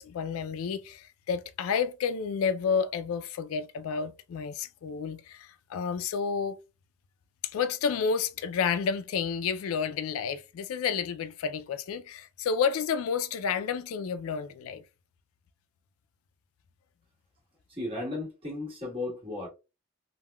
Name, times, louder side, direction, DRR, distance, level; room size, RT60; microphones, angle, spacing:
voice 1, 0.0-6.6 7.4-14.8, left 6 dB, 75° left, 0.3 m, -30 dB
voice 2, 17.7-19.5, left 2 dB, 25° right, 1.4 m, -35 dB
3.5 x 2.1 x 2.2 m
head